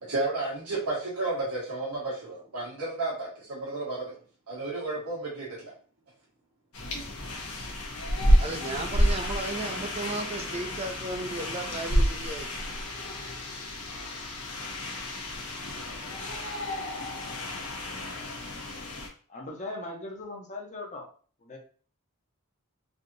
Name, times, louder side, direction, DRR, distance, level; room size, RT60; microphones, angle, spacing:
voice 1, 0.0-4.2 4.5-5.7 9.7-9.8, right 2 dB, 85° right, -5 dB, 1.2 m, -32 dB
sound 1, 6.7-19.1, equal, 85° left, 1.0 m, -30 dB
voice 2, 8.4-12.5, right 2 dB, 25° right, 5 dB, 0.4 m, -35 dB
voice 3, 19.3-21.1 21.4-21.6, left 2 dB, 30° left, 0 dB, 0.7 m, -39 dB
3.4 x 2.7 x 2.6 m, 0.43 s
head